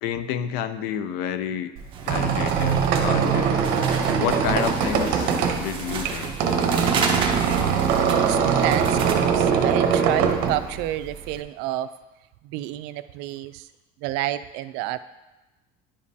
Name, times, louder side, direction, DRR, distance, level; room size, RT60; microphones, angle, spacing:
voice 1, 0.0-1.7 2.0-3.5 4.2-6.4, left 9 dB, 80° left, 12 dB, 0.5 m, -30 dB
Squeak, 1.8-11.4, right 6 dB, 60° right, 0.8 m, -22 dB
sound 1, 1.9-9.1, right 5 dB, 30° right, 0.8 m, -33 dB
voice 2, 7.5-11.9 12.4-13.7 14.0-15.0, right 14 dB, 85° right, 12 dB, 0.4 m, -29 dB
10.0 x 5.2 x 2.7 m, 1.0 s
cardioid pair, 170°, 17 cm